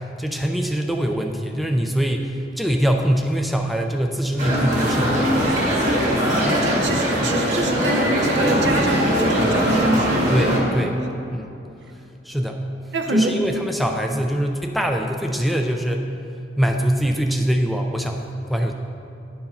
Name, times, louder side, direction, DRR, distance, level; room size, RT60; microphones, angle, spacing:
voice 1, 0.0-5.3 7.2-7.5 10.3-11.0 11.3-11.5 12.2-12.6 13.1-16.1 16.6-18.7, equal, ahead, 3 dB, 0.3 m, -23 dB
sound 1, 4.4-10.6, equal, 40° right, 1.9 m, -20 dB
voice 2, 6.2-10.3 12.9-13.4, right 1 dB, 75° right, 4 dB, 0.8 m, -25 dB
10.5 x 4.6 x 5.5 m, 2.8 s
head